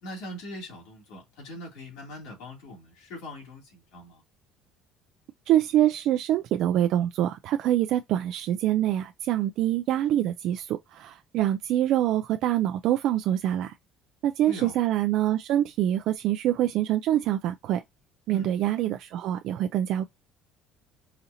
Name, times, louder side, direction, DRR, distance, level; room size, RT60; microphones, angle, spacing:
voice 1, 0.0-4.2 14.5-14.8 18.3-18.5, equal, 75° left, 2.8 m, -41 dB
voice 2, 5.5-13.7 14.2-17.8 18.3-20.0, right 12 dB, 50° right, 0.4 m, -25 dB
5.0 x 2.8 x 2.6 m
cardioid pair, 170°, 0 cm